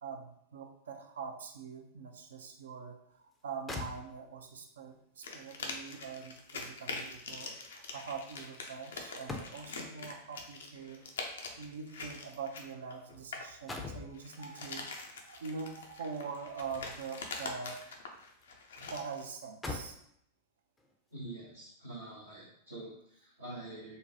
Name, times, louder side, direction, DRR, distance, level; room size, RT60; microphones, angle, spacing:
voice 1, 0.0-11.0 11.6-17.8 18.8-20.0, right 5 dB, 65° right, 4 dB, 0.4 m, -44 dB
sound 1, 3.3-3.4 3.7-4.5 5.9-9.9 11.0-13.1 13.4-14.2 15.6-17.2 17.6-18.6 18.9-19.0 19.4-20.1 20.8-21.0, left 3 dB, 10° left, 0.5 m, -46 dB
sound 2, 5.2-13.5 14.1-19.2, left 3 dB, 65° left, 0.5 m, -44 dB
voice 2, 21.1-24.0, right 2 dB, 85° right, -9 dB, 0.8 m, -46 dB
3.8 x 2.2 x 2.7 m, 0.70 s
figure-of-eight pair, 90°, 0 cm